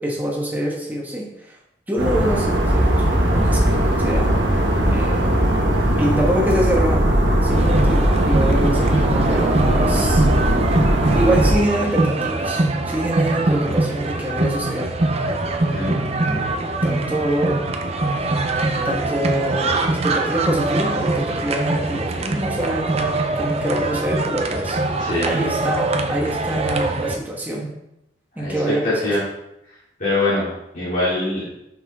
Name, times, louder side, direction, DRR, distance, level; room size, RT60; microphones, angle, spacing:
voice 1, 0.0-1.5 1.9-2.9 3.2-4.3 4.8-7.0 7.4-10.2 11.1-14.9 16.0-16.4 16.8-17.7 18.8-24.8 25.2-27.7 28.4-29.2, right 1 dB, 10° right, -3 dB, 1.3 m, -25 dB
sound 1, 2.0-11.5, right 1 dB, 80° right, 1.2 m, -18 dB
sound 2, 7.5-27.2, right 2 dB, 35° right, 0.6 m, -23 dB
voice 2, 15.7-16.0 25.0-25.3 28.4-28.5 28.8-29.2 30.0-30.5 30.7-31.4, left 2 dB, 50° left, -10 dB, 2.6 m, -22 dB
5.9 x 5.6 x 3.6 m, 0.84 s
head